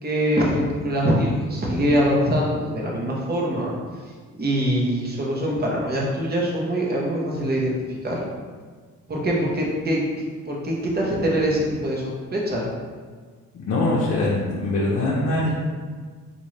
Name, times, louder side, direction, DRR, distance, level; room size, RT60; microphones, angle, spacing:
voice 1, 0.0-3.7 4.4-8.2 9.1-12.7, equal, 30° right, -3 dB, 0.9 m, -23 dB
voice 2, 13.7-15.6, left 2 dB, 55° left, -5 dB, 0.7 m, -22 dB
3.9 x 2.6 x 3.2 m, 1.5 s
cardioid pair, 90°, 30 cm